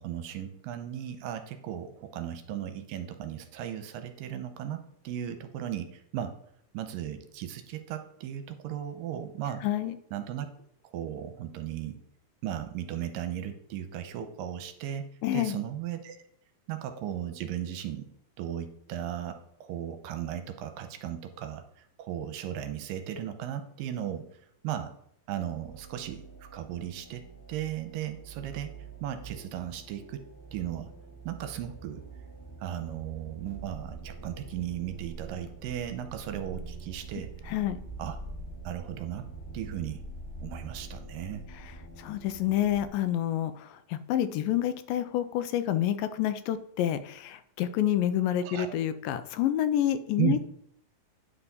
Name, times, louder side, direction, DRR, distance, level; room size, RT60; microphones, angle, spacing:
voice 1, 0.0-6.4 6.7-9.7 10.1-10.5 10.8-12.0 12.4-15.1 15.3-16.2 16.7-18.1 18.4-24.9 25.3-28.7 29.0-30.2 30.5-30.9 31.2-32.0 32.6-37.3 38.0-38.2 38.6-39.3 39.5-40.0 40.4-41.5 48.4-48.8 50.2-50.4, right 11 dB, 80° right, 8 dB, 2.3 m, -36 dB
voice 2, 9.6-10.0 15.2-15.6 37.5-37.8 41.5-50.4, left 11 dB, 80° left, 11 dB, 2.2 m, -28 dB
sound 1, 25.5-42.9, right 3 dB, 10° right, 1.4 m, -45 dB
9.7 x 5.7 x 4.1 m, 0.70 s
omnidirectional pair, 4.2 m